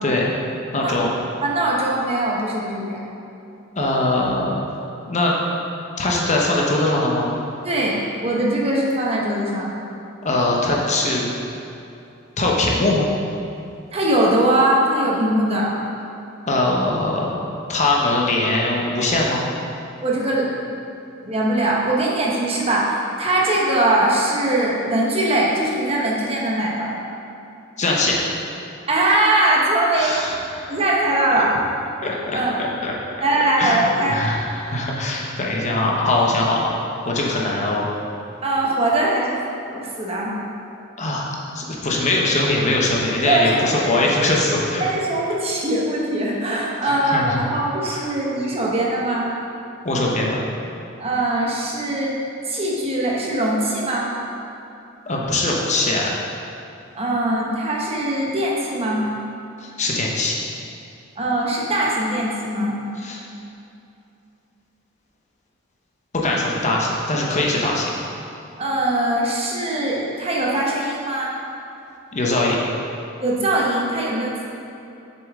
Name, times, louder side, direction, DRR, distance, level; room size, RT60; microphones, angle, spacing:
voice 1, 0.7-1.1 3.8-4.6 5.1-5.3 6.0-7.3 10.2-11.3 12.4-13.1 16.5-17.3 17.7-19.4 27.8-28.3 29.9-30.8 31.3-31.4 32.0-32.9 33.6-36.7 37.0-37.9 41.0-44.8 46.8-47.4 47.8-48.2 49.8-50.4 55.1-56.2 59.6-60.4 63.0-63.2 66.1-68.0 72.1-72.6, left 2 dB, 35° left, -2 dB, 0.9 m, -21 dB
voice 2, 1.4-3.0 7.6-9.7 13.9-15.7 20.0-20.5 21.2-27.0 28.9-30.3 30.7-31.5 32.3-32.6 33.2-34.2 38.4-40.4 43.2-43.9 44.8-49.3 51.0-52.2 52.5-54.1 56.9-59.1 61.2-62.7 68.6-71.3 73.2-74.5, right 1 dB, 30° right, -3 dB, 1.1 m, -21 dB
7.2 x 6.8 x 3.6 m, 2.8 s
head